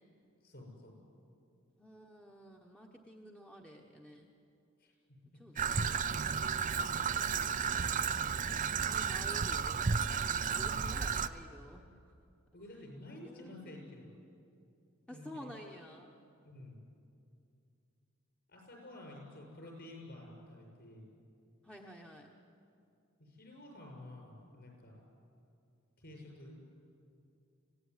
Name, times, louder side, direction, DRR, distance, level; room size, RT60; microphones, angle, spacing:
voice 1, 0.4-1.0 4.8-4.9 5.5-5.6 6.9-7.9 10.7-11.1 12.5-14.1 15.1-15.5 16.4-16.8 18.5-21.1 23.2-25.0 26.0-26.6, left 1 dB, 50° left, 1 dB, 6.9 m, -51 dB
voice 2, 1.8-4.3 5.3-6.1 6.5-7.1 8.8-12.1 13.2-13.9 15.1-16.1 21.6-22.3, equal, 5° left, 0 dB, 1.2 m, -52 dB
Traffic noise roadway noise / Trickle dribble, 5.6-11.3, right 6 dB, 40° right, 0.6 m, -33 dB
26.0 x 17.0 x 9.8 m, 2.6 s
head